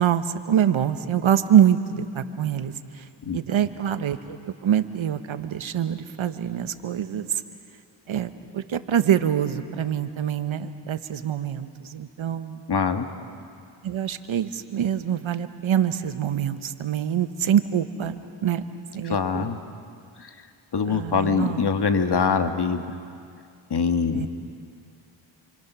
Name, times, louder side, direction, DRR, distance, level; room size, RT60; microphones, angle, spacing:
voice 1, 0.0-3.1 3.3-7.4 8.1-12.6 13.8-18.6 18.9-19.5 20.9-21.6 24.1-24.3, right 9 dB, 75° right, 10 dB, 1.3 m, -25 dB
voice 2, 12.7-13.1 19.1-19.6 20.2-20.3 20.7-22.8 23.7-24.3, left 5 dB, 55° left, 7 dB, 1.7 m, -23 dB
29.0 x 25.5 x 6.2 m, 2.4 s
cardioid pair, 60°, 48 cm